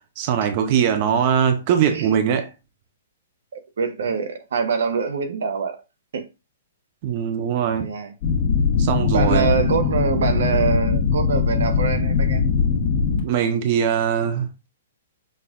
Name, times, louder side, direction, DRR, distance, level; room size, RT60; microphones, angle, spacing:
voice 1, 0.2-2.5 7.0-7.9 8.8-9.5 13.2-14.7, right 8 dB, 30° right, 0.5 m, -21 dB
voice 2, 3.5-5.8 6.1-6.3 7.7-8.1 9.1-12.4, right 5 dB, 65° right, 1.0 m, -24 dB
sound 1, 8.2-13.2, left 5 dB, 30° left, 1.4 m, -20 dB
5.8 x 2.4 x 3.6 m
hypercardioid pair, 175°, 0 cm